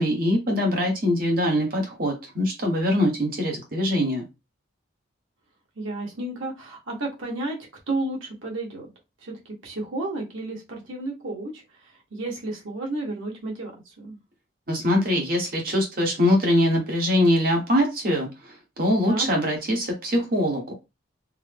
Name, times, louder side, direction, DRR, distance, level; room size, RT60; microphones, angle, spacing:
voice 1, 0.0-4.2 14.7-18.3 18.8-20.7, left 1 dB, 45° right, 0 dB, 1.0 m, -23 dB
voice 2, 5.8-7.6 7.9-8.9 9.2-11.6 12.1-13.7 14.0-14.2 19.0-19.3, right 2 dB, 80° right, -1 dB, 1.3 m, -32 dB
3.7 x 2.0 x 3.4 m, 0.24 s
head